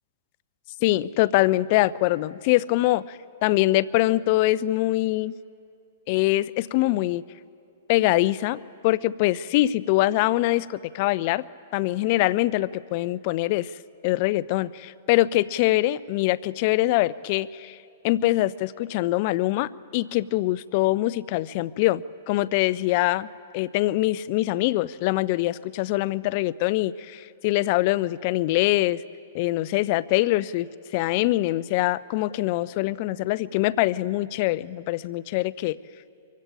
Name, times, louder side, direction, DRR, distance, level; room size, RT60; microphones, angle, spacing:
voice 1, 0.8-5.4 6.1-7.2 7.9-11.4 11.7-13.7 14.0-17.8 18.0-23.3 23.5-29.0 29.3-35.8, left 17 dB, 50° left, 20 dB, 0.5 m, -23 dB
23.0 x 16.0 x 9.0 m, 2.5 s
hypercardioid pair, 115°, 0 cm